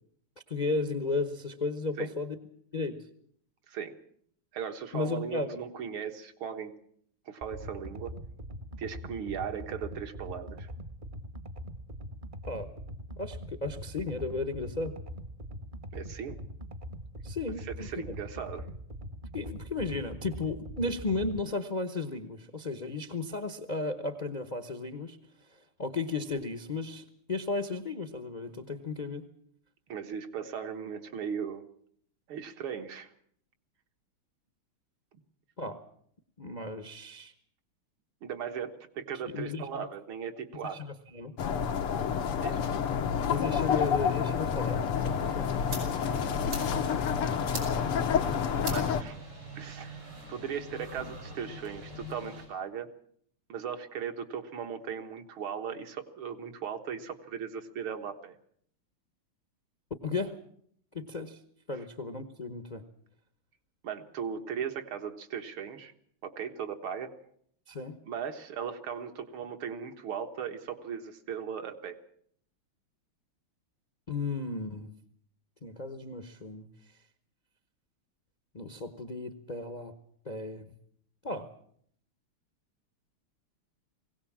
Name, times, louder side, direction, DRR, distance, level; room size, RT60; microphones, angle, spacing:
voice 1, 0.5-2.4 2.7-3.1 4.9-5.6 12.5-12.7 13.2-15.0 17.2-18.1 19.3-25.2 25.8-29.3 35.6-35.8 36.4-37.3 39.3-39.7 40.6-41.3 43.2-44.8 45.3-45.5 60.0-60.4 60.9-61.4 61.7-62.8 67.7-68.0 74.1-74.9 75.6-76.7 78.5-79.9 80.2-80.7 81.2-81.5, left 3 dB, 35° left, 8 dB, 0.6 m, -34 dB
voice 2, 4.5-6.7 7.3-8.2 8.8-10.7 15.9-16.4 17.6-18.7 29.9-31.6 32.3-33.1 38.2-40.8 42.4-42.6 46.0-46.4 48.7-49.2 49.6-52.9 53.5-58.4 63.8-65.9 66.2-67.1 68.0-72.0, right 7 dB, 70° right, 6 dB, 2.3 m, -38 dB
sound 1, 7.4-21.4, equal, 30° right, 1.0 m, -42 dB
sound 2, 41.4-49.0, left 7 dB, 90° left, 2.1 m, -29 dB
sound 3, 45.0-52.5, right 1 dB, 85° right, 7.1 m, -43 dB
21.5 x 17.5 x 7.3 m, 0.65 s
omnidirectional pair, 2.4 m